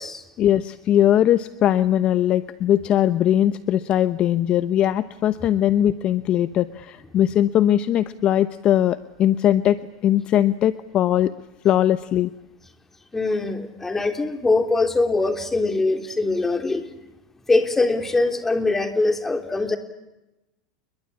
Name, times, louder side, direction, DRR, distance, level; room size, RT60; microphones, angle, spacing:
voice 1, 0.4-11.3 11.6-12.3, left 11 dB, 40° left, 13 dB, 1.0 m, -20 dB
voice 2, 13.1-16.9 17.5-19.8, left 3 dB, 10° left, 6 dB, 3.4 m, -22 dB
29.5 x 22.5 x 8.6 m, 0.96 s
supercardioid pair, 125°, 3 cm